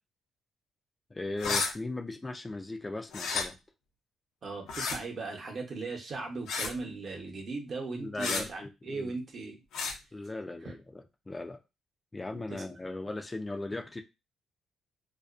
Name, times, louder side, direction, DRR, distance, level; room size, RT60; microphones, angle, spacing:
voice 1, 1.1-3.6 7.9-9.2 10.1-11.6 12.1-14.0, left 2 dB, 20° left, 0.3 m, -38 dB
sound 1, 1.4-1.7 3.1-3.4 4.7-5.0 6.5-6.8 8.2-8.4 9.7-9.9, left 4 dB, 80° left, 0.6 m, -31 dB
voice 2, 4.4-9.6 12.3-12.6, right 3 dB, 50° right, 0.8 m, -38 dB
2.4 x 2.1 x 2.4 m
cardioid pair, 90°, 0 cm